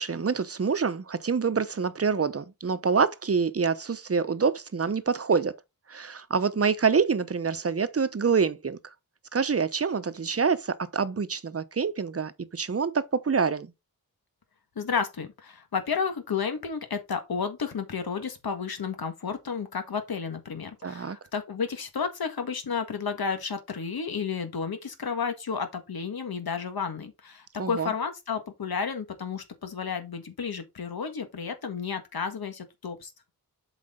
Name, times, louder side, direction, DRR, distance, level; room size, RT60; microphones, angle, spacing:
voice 1, 0.0-5.5 5.9-8.8 9.3-13.7 20.8-21.2 27.6-27.9, right 5 dB, 40° right, 0.8 m, -26 dB
voice 2, 14.7-33.1, left 6 dB, 85° left, 1.6 m, -32 dB
7.7 x 4.9 x 3.7 m
wide cardioid pair, 80°, 36 cm